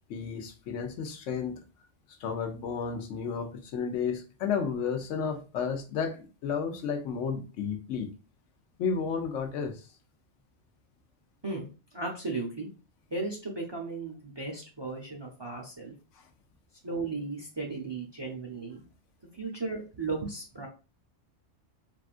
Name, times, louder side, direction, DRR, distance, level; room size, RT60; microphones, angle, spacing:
voice 1, 0.1-1.6 2.2-8.1 8.8-9.9, left 6 dB, 80° left, 6 dB, 0.9 m, -32 dB
voice 2, 11.9-12.7 13.1-15.9 16.8-18.8 19.4-20.7, right 3 dB, 30° right, -1 dB, 0.5 m, -35 dB
3.4 x 2.3 x 2.4 m, 0.33 s
omnidirectional pair, 1.3 m